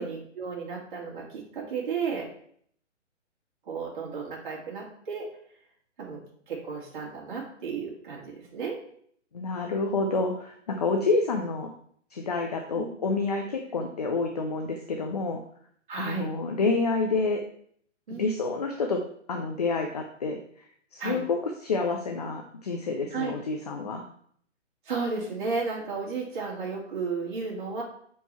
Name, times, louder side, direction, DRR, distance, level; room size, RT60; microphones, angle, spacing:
voice 1, 0.0-2.3 3.7-5.3 6.0-8.8 12.7-13.0 15.9-16.3 18.1-18.3 21.0-21.2 23.1-23.4 24.9-27.8, right 5 dB, 40° right, -3 dB, 2.3 m, -33 dB
voice 2, 9.3-11.7 12.1-15.4 16.0-17.4 18.2-20.4 20.9-24.0, left 3 dB, 35° left, 3 dB, 0.5 m, -28 dB
6.6 x 4.7 x 4.3 m, 0.63 s
hypercardioid pair, 165°, 37 cm